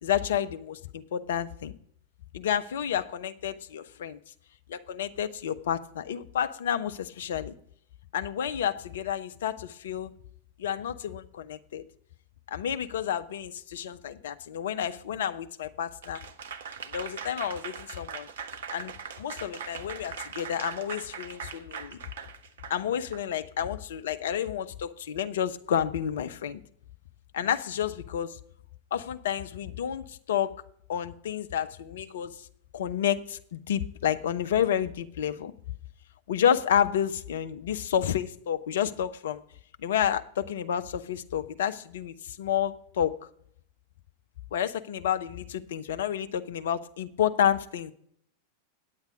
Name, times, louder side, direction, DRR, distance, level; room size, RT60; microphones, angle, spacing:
voice 1, 0.0-1.7 2.3-4.2 4.7-7.5 8.1-10.1 10.6-11.8 12.5-16.2 16.9-18.3 18.7-22.0 22.7-26.6 27.3-28.4 28.9-30.6 30.9-32.4 32.7-35.5 36.3-39.4 39.8-43.2 44.5-47.9, left 9 dB, 60° left, 11 dB, 0.5 m, -30 dB
Applause / Crowd, 16.0-23.2, right 6 dB, 60° right, 0.7 m, -40 dB
9.2 x 8.1 x 5.1 m, 0.65 s
figure-of-eight pair, 90°, 0 cm